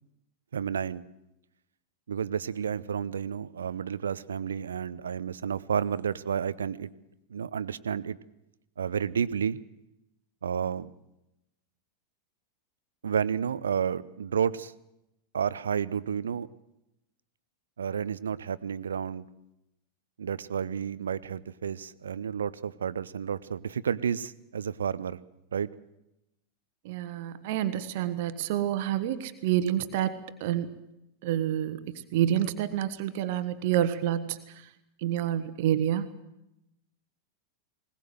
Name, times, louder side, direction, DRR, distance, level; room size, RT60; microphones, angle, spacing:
voice 1, 0.5-1.0 2.1-6.9 7.3-8.2 8.8-9.6 10.4-10.9 13.0-14.7 15.3-16.5 17.8-19.2 20.2-25.2 25.5-25.7, right 7 dB, 70° right, 18 dB, 0.7 m, -31 dB
voice 2, 26.8-30.7 31.2-34.6 35.0-36.1, right 11 dB, 50° right, 12 dB, 1.3 m, -28 dB
20.5 x 19.5 x 7.9 m, 0.87 s
figure-of-eight pair, 90°, 0 cm